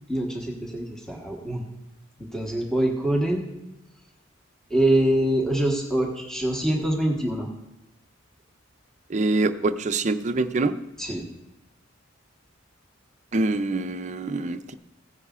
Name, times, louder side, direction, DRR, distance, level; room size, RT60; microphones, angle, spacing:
voice 1, 0.1-1.6 2.2-3.4 4.7-7.5 11.0-11.3, right 1 dB, 5° left, -1 dB, 1.3 m, -24 dB
voice 2, 9.1-10.7 13.3-14.7, right 2 dB, 35° right, 8 dB, 0.5 m, -25 dB
16.0 x 9.6 x 2.4 m, 0.90 s
head